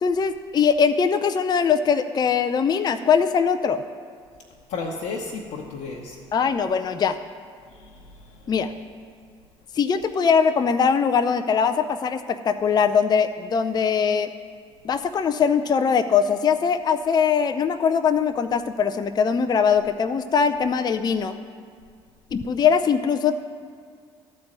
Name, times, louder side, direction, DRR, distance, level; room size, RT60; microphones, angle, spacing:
voice 1, 0.0-3.8 6.3-7.2 8.5-8.7 9.7-14.3 14.8-21.3 22.3-23.3, left 6 dB, 30° left, 9 dB, 0.5 m, -21 dB
voice 2, 4.7-6.2 7.7-8.3, left 4 dB, 60° left, -2 dB, 1.0 m, -33 dB
13.0 x 4.3 x 7.7 m, 2.1 s
hypercardioid pair, 60°, 14 cm